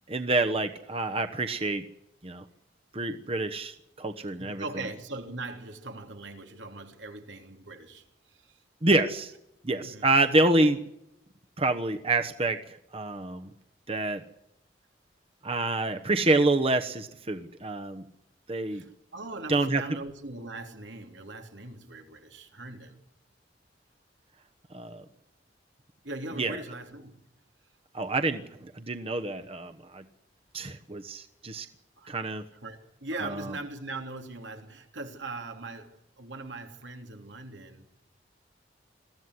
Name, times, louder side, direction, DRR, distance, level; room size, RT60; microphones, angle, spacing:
voice 1, 0.1-1.8 2.2-2.4 2.9-4.6 8.8-9.3 9.6-10.8 11.6-13.5 13.9-14.2 15.4-18.0 18.5-18.8 19.5-19.8 24.7-25.0 26.4-26.6 27.9-30.0 30.5-31.7 32.1-32.4 33.2-33.5, right 2 dB, 30° right, 1.1 m, -27 dB
voice 2, 4.4-8.6 9.8-10.1 18.7-23.0 26.0-27.2 32.0-32.2 32.6-37.9, right 2 dB, 85° right, 3.3 m, -40 dB
22.0 x 15.0 x 9.7 m
head